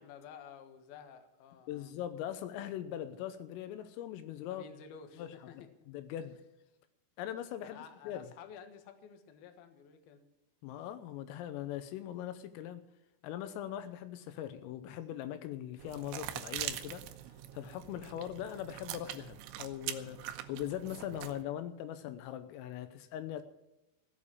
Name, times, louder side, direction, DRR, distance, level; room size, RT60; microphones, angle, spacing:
voice 1, 0.0-2.0 4.5-5.7 7.6-10.2, left 7 dB, 65° left, 7 dB, 2.7 m, -52 dB
voice 2, 1.7-4.6 5.2-5.3 5.5-6.4 7.2-7.8 8.1-8.3 10.6-12.9 13.2-17.0 17.5-23.4, left 11 dB, 80° left, 11 dB, 3.4 m, -41 dB
sound 1, 15.8-21.4, right 12 dB, 80° right, 2.9 m, -43 dB
16.5 x 7.3 x 8.5 m, 0.92 s
omnidirectional pair, 6.0 m